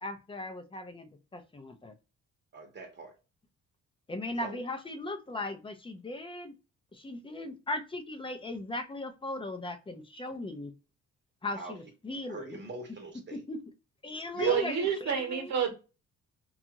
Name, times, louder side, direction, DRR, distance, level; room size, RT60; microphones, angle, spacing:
voice 1, 0.0-1.9 4.1-6.5 6.9-10.7 11.4-12.6 13.3-13.6 14.0-15.5, left 2 dB, 15° left, 0.5 m, -38 dB
voice 2, 2.5-3.1 4.4-4.6 11.5-11.7 12.3-13.4 14.3-14.6, right 4 dB, 40° right, 0.8 m, -40 dB
voice 3, 14.5-15.7, right 8 dB, 60° right, 1.0 m, -28 dB
2.5 x 2.4 x 2.8 m
cardioid pair, 90°, 30 cm